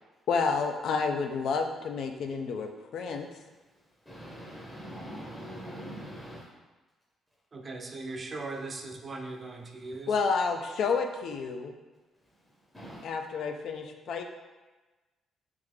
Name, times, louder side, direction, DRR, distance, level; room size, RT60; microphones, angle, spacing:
voice 1, 0.3-3.3 10.1-11.7 13.0-14.2, left 5 dB, 70° left, 5 dB, 0.3 m, -30 dB
voice 2, 3.6-6.5 12.3-13.1, equal, 10° left, -6 dB, 0.7 m, -43 dB
voice 3, 7.5-10.2, right 3 dB, 35° right, 3 dB, 0.4 m, -39 dB
3.5 x 2.7 x 3.3 m, 1.2 s
cardioid pair, 90°, 0 cm